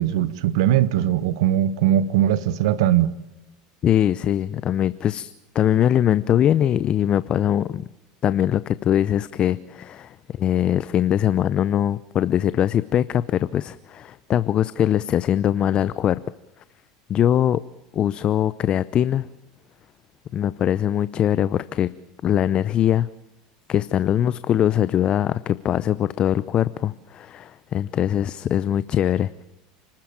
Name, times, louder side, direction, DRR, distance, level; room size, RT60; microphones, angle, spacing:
voice 1, 0.0-3.1, right 11 dB, 80° right, 1.2 m, -20 dB
voice 2, 3.8-7.9 8.2-16.2 17.1-17.6 17.9-19.3 20.3-21.9 22.2-23.1 23.7-29.4, left 10 dB, 40° left, 0.7 m, -22 dB
29.5 x 13.5 x 8.8 m
supercardioid pair, 115°, 3 cm